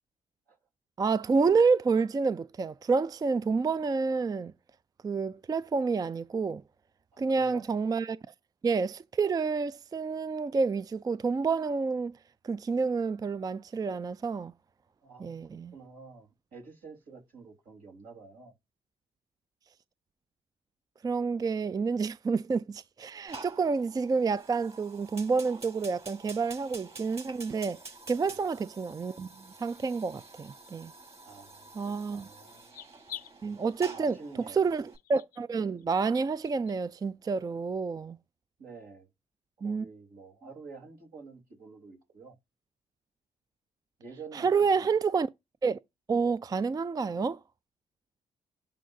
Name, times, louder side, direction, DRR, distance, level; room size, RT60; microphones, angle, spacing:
voice 1, 1.0-4.5 5.0-6.6 7.2-8.2 8.6-12.2 12.4-14.5 15.2-15.7 21.0-27.8 28.1-29.3 29.6-30.9 31.8-32.3 33.4-34.2 34.5-38.2 39.6-39.9 44.3-45.3 45.6-45.8 46.1-47.4, right 4 dB, 25° right, 0.3 m, -29 dB
voice 2, 7.1-7.7 15.0-15.4 15.7-18.5 28.2-28.4 31.2-32.6 33.9-34.6 38.6-39.1 39.6-42.3 44.0-44.9, right 4 dB, 75° right, 3.7 m, -49 dB
Fire, 23.3-35.0, right 3 dB, 45° right, 5.3 m, -49 dB
sound 1, 30.4-30.7 31.4-31.5 32.0-32.2 32.6-33.3 33.7-33.9 34.4-34.5 34.9-35.4 35.8-35.9 36.4-36.7, left 12 dB, 70° left, 0.6 m, -46 dB
11.5 x 3.8 x 2.7 m
supercardioid pair, 60°, 15 cm